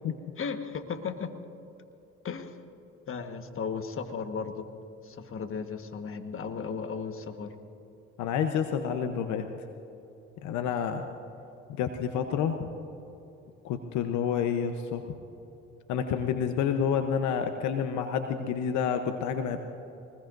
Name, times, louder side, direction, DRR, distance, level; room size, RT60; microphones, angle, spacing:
voice 1, 0.4-1.3 2.2-2.6 3.1-4.7 5.0-7.5, left 5 dB, 45° left, 7 dB, 1.5 m, -35 dB
voice 2, 8.2-9.5 10.4-11.1 11.8-12.7 13.6-15.0 15.9-19.6, left 7 dB, 70° left, 7 dB, 1.0 m, -29 dB
23.5 x 20.0 x 2.6 m, 2.9 s
supercardioid pair, 70°, 30 cm